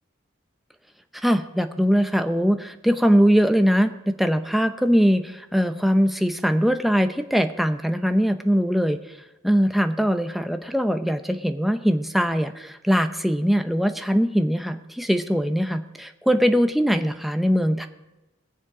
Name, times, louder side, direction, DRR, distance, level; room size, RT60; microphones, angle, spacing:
voice 1, 1.2-9.0 9.4-17.9, equal, ahead, 7 dB, 0.7 m, -21 dB
21.0 x 7.3 x 4.9 m, 1.1 s
head